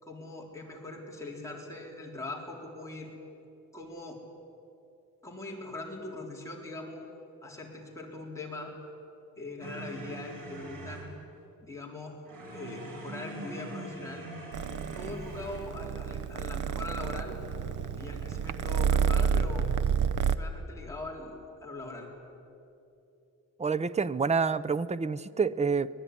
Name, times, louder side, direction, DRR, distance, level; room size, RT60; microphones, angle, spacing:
voice 1, 0.0-3.1 3.7-4.2 5.2-7.1 7.4-8.7 9.4-11.1 11.6-12.2 12.5-14.3 14.9-17.4 18.0-19.7 20.2-22.1, left 2 dB, 10° left, -2 dB, 4.2 m, -41 dB
sound 1, 9.6-11.1 12.3-15.8 16.7-19.7, right 2 dB, 80° right, 7.5 m, -44 dB
Purr, 14.5-20.4, right 7 dB, 65° right, 0.9 m, -29 dB
voice 2, 23.6-25.9, right 5 dB, 20° right, 16 dB, 0.6 m, -28 dB
24.5 x 20.0 x 9.8 m, 2.8 s
wide cardioid pair, 155°, 33 cm